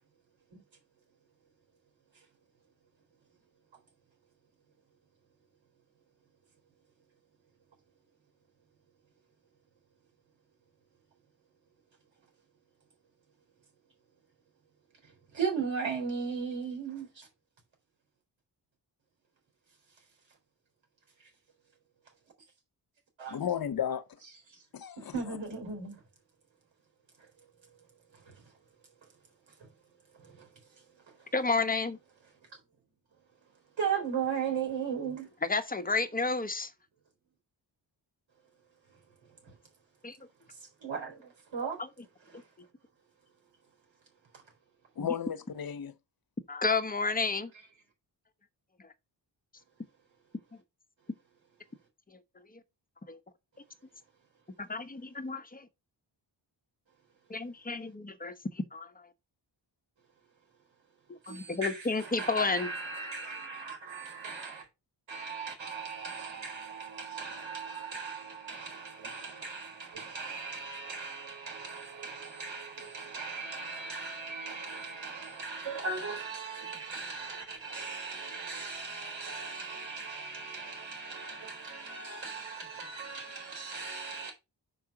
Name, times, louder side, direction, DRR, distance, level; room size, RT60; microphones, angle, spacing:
voice 1, 15.3-17.3 23.2-23.4 25.0-26.0 28.3-28.4 30.2-30.5 33.8-35.3 39.5-39.6 40.8-41.8 61.2-64.7 65.1-84.3, right 5 dB, 90° right, 3.8 m, -37 dB
voice 2, 23.3-24.2 24.7-25.4 45.0-45.9, left 8 dB, 50° left, 0.9 m, -34 dB
voice 3, 31.3-32.0 35.4-36.7 40.0-40.2 41.8-41.9 45.0-45.1 46.5-47.5 53.1-53.2 54.6-55.7 57.3-58.9 61.3-62.7, left 3 dB, 20° left, 1.0 m, -31 dB
6.2 x 4.9 x 5.8 m
wide cardioid pair, 115°, 45 cm